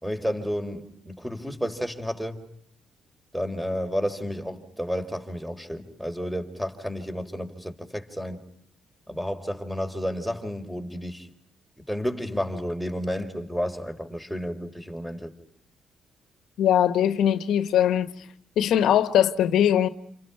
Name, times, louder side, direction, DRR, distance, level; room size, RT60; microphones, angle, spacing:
voice 1, 0.0-2.4 3.3-8.4 9.1-11.3 11.9-15.3, equal, ahead, 4.8 m, -31 dB
voice 2, 16.6-18.1 18.6-19.9, left 10 dB, 75° left, 1.7 m, -21 dB
29.0 x 29.0 x 5.9 m
cardioid pair, 90°, 0 cm